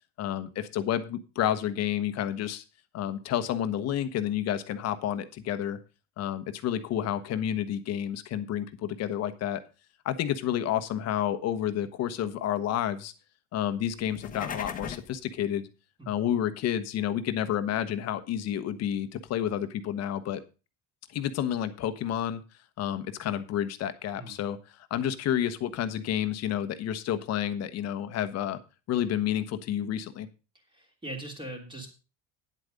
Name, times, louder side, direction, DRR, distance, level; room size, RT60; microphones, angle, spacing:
voice 1, 0.2-2.6 2.9-5.8 6.2-9.6 10.0-13.1 13.5-15.7 16.1-20.4 21.1-22.4 22.8-24.6 24.9-28.6 28.9-30.3, left 10 dB, 50° left, 11 dB, 1.2 m, -30 dB
sound 1, 14.0-15.2, left 6 dB, 25° left, 1.3 m, -37 dB
voice 2, 30.7-31.9, right 1 dB, 15° right, 1 dB, 3.2 m, -40 dB
9.8 x 8.2 x 5.2 m, 0.32 s
cardioid pair, 145°, 33 cm